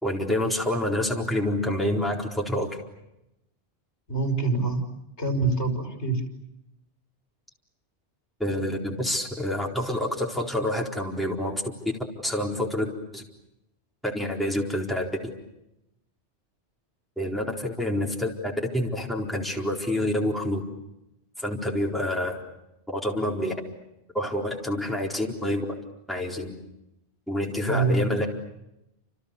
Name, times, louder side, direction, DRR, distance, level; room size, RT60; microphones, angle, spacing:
voice 1, 0.0-2.8 8.4-11.7 12.2-13.2 14.0-15.3 17.2-20.6 21.4-22.4 22.9-23.5 24.1-25.8 26.1-26.6 27.3-28.4, left 1 dB, ahead, 0 dB, 4.2 m, -27 dB
voice 2, 4.1-4.8 5.2-6.2 27.7-28.1, right 3 dB, 80° left, 5 dB, 5.4 m, -25 dB
29.5 x 28.0 x 6.9 m, 0.87 s
omnidirectional pair, 1.1 m